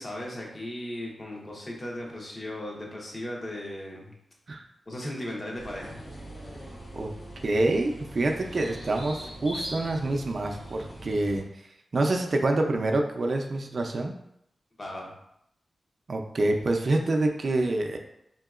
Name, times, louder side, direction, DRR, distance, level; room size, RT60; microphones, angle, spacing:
voice 1, 0.0-4.1 4.9-6.0 14.8-15.1, left 1 dB, 35° left, -2 dB, 1.0 m, -37 dB
sound 1, 5.6-11.4, equal, 80° left, 1.1 m, -41 dB
voice 2, 7.4-11.5 11.9-14.1 16.1-18.0, right 2 dB, 55° right, 2 dB, 0.4 m, -26 dB
4.4 x 2.8 x 2.4 m, 0.76 s
cardioid pair, 70°, 0 cm